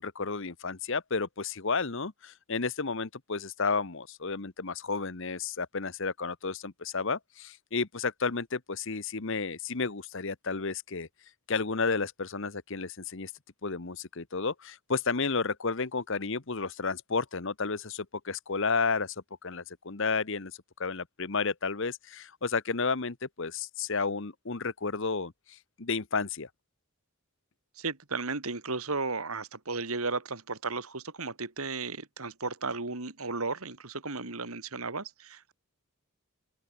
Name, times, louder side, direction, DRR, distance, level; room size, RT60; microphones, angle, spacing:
voice 1, 0.0-11.1 11.5-13.3 13.6-19.1 19.4-20.5 20.8-25.3 25.8-26.5, left 4 dB, 60° left, 1.1 m, -32 dB
voice 2, 27.8-35.5, right 3 dB, 75° right, 2.6 m, -34 dB
open air
head